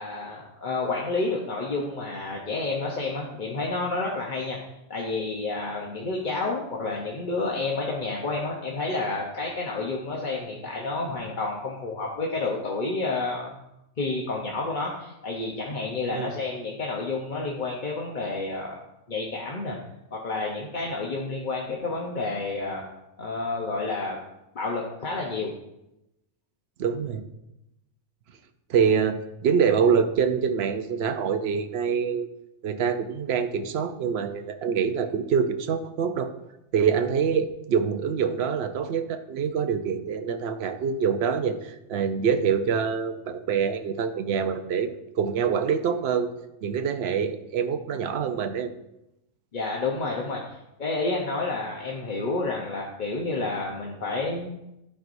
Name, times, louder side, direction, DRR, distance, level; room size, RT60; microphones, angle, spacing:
voice 1, 0.0-4.6 4.9-13.5 14.0-18.8 19.1-19.8 20.1-22.8 23.2-24.2 24.5-25.5 41.9-42.0 49.5-54.5, left 3 dB, 40° left, -2 dB, 0.9 m, -30 dB
voice 2, 26.8-27.2 28.7-32.3 32.6-36.3 36.7-46.3 46.6-48.7, right 6 dB, 60° right, 8 dB, 0.8 m, -25 dB
13.5 x 4.6 x 2.6 m, 0.89 s
omnidirectional pair, 1.4 m